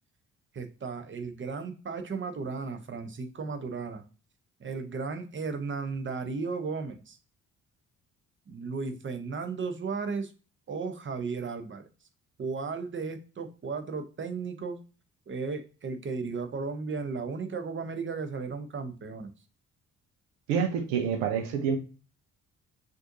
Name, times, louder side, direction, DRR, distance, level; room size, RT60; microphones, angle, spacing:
voice 1, 0.5-4.0 4.6-7.2 8.5-10.3 10.7-11.9 12.4-14.8 15.3-19.3, right 4 dB, 30° right, 8 dB, 0.9 m, -35 dB
voice 2, 20.5-21.8, right 7 dB, 70° right, 6 dB, 0.8 m, -27 dB
6.0 x 2.6 x 2.6 m, 0.34 s
figure-of-eight pair, 40°, 42 cm